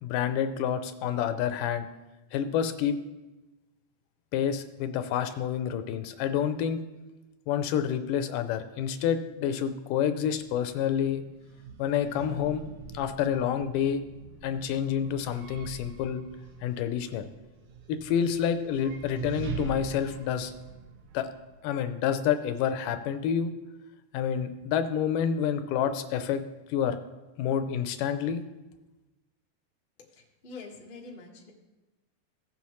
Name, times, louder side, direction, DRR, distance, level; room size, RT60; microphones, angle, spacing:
voice 1, 0.0-1.9 2.3-3.0 4.3-6.8 7.5-11.2 11.8-12.6 12.9-14.0 14.4-16.2 16.6-17.3 17.9-20.5 21.1-21.3 21.6-23.5 24.1-26.4 26.7-27.0 27.4-28.4, left 8 dB, 85° left, 10 dB, 2.2 m, -28 dB
sound 1, 10.1-22.2, right 6 dB, 75° right, 1.4 m, -44 dB
voice 2, 30.1-31.5, left 3 dB, 55° left, -2 dB, 0.5 m, -45 dB
16.5 x 7.1 x 3.1 m, 1.1 s
omnidirectional pair, 3.7 m